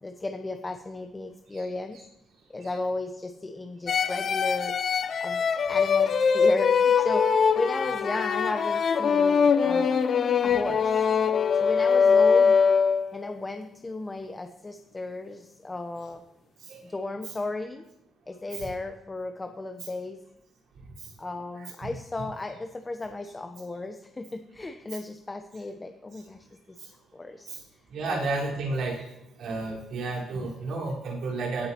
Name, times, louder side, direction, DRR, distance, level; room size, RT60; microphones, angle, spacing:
voice 1, 0.0-2.0 2.5-4.9 5.2-10.0 10.4-11.0 11.6-12.6 13.1-16.2 16.8-17.8 18.3-20.2 21.2-26.8 27.1-27.5 28.1-28.2, left 2 dB, 20° left, 6 dB, 0.8 m, -34 dB
sound 1, 3.9-13.2, left 6 dB, 55° left, 0.8 m, -22 dB
voice 2, 27.9-29.1 29.4-31.7, right 3 dB, 75° right, -4 dB, 4.4 m, -31 dB
16.5 x 9.4 x 3.0 m, 0.87 s
cardioid pair, 90°, 0 cm